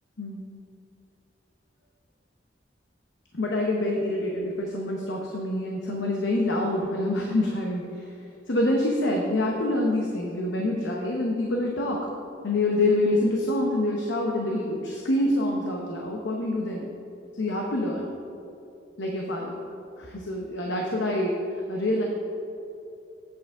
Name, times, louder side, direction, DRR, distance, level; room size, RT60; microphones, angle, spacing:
voice 1, 3.3-8.1 8.5-12.1 12.4-16.9 17.3-18.1 19.0-19.6 20.0-21.4 21.7-22.0, left 1 dB, 85° left, 0 dB, 0.8 m, -26 dB
8.5 x 7.5 x 3.7 m, 2.8 s
head